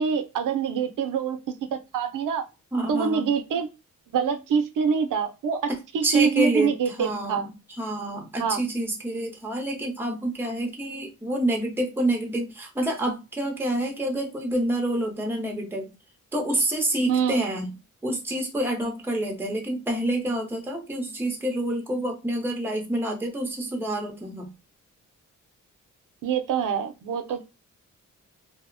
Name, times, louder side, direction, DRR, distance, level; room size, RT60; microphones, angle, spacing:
voice 1, 0.0-1.4 1.7-2.4 2.9-3.7 4.1-7.5 8.4-8.6 17.1-17.4 26.2-27.4, right 6 dB, 80° right, 0.5 m, -25 dB
voice 2, 2.7-3.3 5.7-6.7 7.0-7.4 7.8-15.9 16.3-17.7 18.0-24.5, right 1 dB, 5° right, 0.5 m, -28 dB
2.8 x 2.0 x 2.4 m
wide cardioid pair, 165°, 31 cm